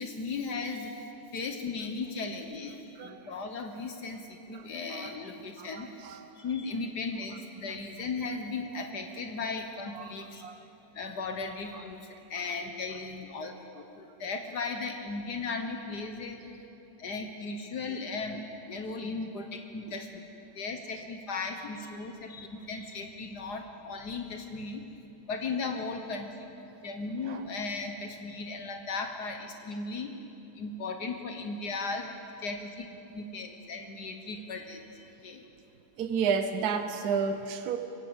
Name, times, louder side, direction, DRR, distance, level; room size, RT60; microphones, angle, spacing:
voice 1, 0.0-6.0 6.4-10.4 10.9-16.5 17.0-20.1 20.6-24.9 25.3-26.5 26.8-30.1 30.6-35.4, left 3 dB, 75° left, 5 dB, 1.8 m, -37 dB
voice 2, 4.5-5.2 5.6-6.3 9.9-10.1 10.4-10.6 27.3-27.4 36.0-37.8, right 6 dB, 65° right, 7 dB, 1.4 m, -32 dB
24.0 x 16.5 x 8.1 m, 2.8 s
omnidirectional pair, 1.8 m